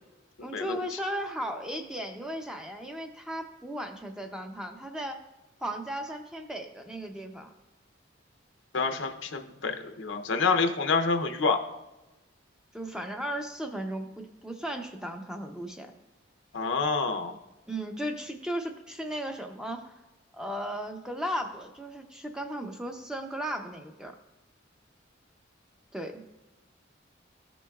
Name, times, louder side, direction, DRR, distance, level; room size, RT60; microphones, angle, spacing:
voice 1, 0.4-5.2 5.6-7.5 12.7-15.9 17.7-20.0 20.3-24.1 25.9-26.1, equal, 5° right, 4 dB, 0.6 m, -36 dB
voice 2, 8.7-11.6 16.5-17.3, left 4 dB, 75° left, 5 dB, 0.7 m, -27 dB
13.5 x 6.0 x 2.4 m, 1.0 s
head